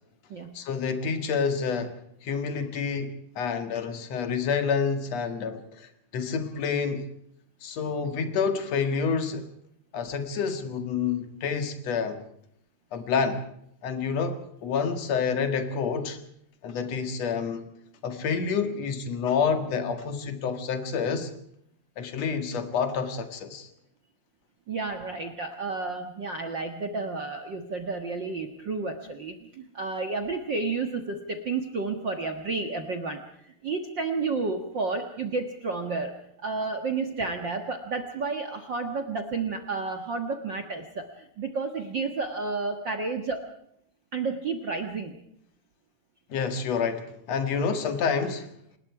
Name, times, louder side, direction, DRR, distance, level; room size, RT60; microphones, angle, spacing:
voice 1, 0.5-7.1 7.6-9.5 9.9-12.3 12.9-13.4 13.8-16.2 16.6-17.7 18.0-21.3 22.0-23.7 46.3-48.5, left 5 dB, 55° left, 8 dB, 2.6 m, -28 dB
voice 2, 24.7-43.5 44.1-45.2, right 4 dB, 50° right, 5 dB, 1.4 m, -31 dB
27.5 x 20.0 x 4.8 m, 0.72 s
omnidirectional pair, 4.1 m